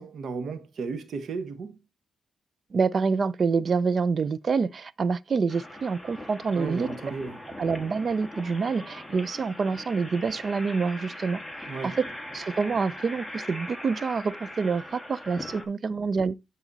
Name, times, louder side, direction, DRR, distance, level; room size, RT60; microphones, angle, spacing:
voice 1, 0.0-1.8 6.5-7.4 11.7-12.0, right 4 dB, 70° right, 1.1 m, -34 dB
voice 2, 2.7-6.9 7.6-11.4 11.8-12.1 12.3-16.3, right 5 dB, 50° right, 0.5 m, -27 dB
sound 1, 5.5-15.6, left 1 dB, ahead, 1.8 m, -40 dB
9.8 x 4.1 x 4.0 m
cardioid pair, 90°, 0 cm